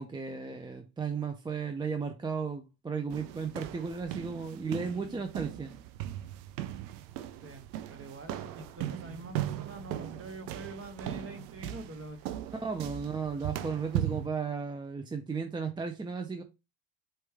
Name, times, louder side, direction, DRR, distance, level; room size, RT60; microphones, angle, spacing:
voice 1, 0.0-5.7 12.6-16.4, right 5 dB, 10° right, 0.3 m, -35 dB
sound 1, 3.1-14.3, right 13 dB, 85° right, 0.6 m, -38 dB
voice 2, 7.4-12.4, right 2 dB, 25° right, 1.2 m, -45 dB
4.4 x 3.2 x 3.4 m
supercardioid pair, 90°, 49 cm